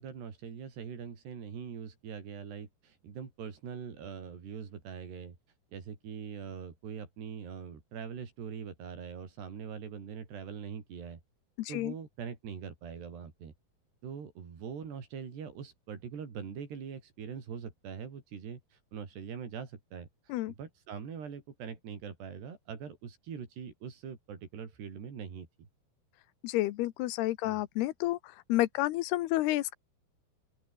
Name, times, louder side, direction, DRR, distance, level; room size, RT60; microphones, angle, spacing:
voice 1, 0.0-5.4 5.7-11.2 11.7-13.5 14.0-25.7 27.4-27.6, right 6 dB, 80° right, 6.5 m, -43 dB
voice 2, 11.6-11.9 20.3-20.5 26.4-28.2 28.5-29.7, left 16 dB, 80° left, 2.9 m, -30 dB
open air
omnidirectional pair, 4.7 m